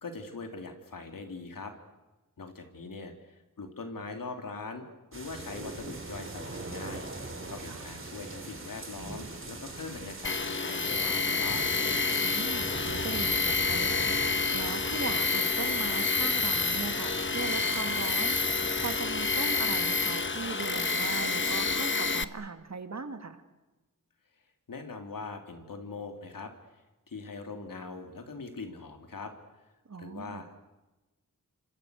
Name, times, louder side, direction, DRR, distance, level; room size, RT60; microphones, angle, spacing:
voice 1, 0.0-1.7 2.4-4.9 5.1-7.1 7.5-11.6 24.7-26.5 27.1-29.3 30.0-30.6, left 4 dB, 80° left, 5 dB, 3.5 m, -41 dB
sound 1, 5.1-21.7, right 2 dB, 40° right, 4.1 m, -42 dB
Tools, 10.2-22.2, left 4 dB, 35° left, 1.1 m, -28 dB
voice 2, 12.2-23.4 29.9-30.4, right 4 dB, 55° right, 8 dB, 2.4 m, -39 dB
29.0 x 25.5 x 6.6 m, 1.1 s
wide cardioid pair, 75°, 33 cm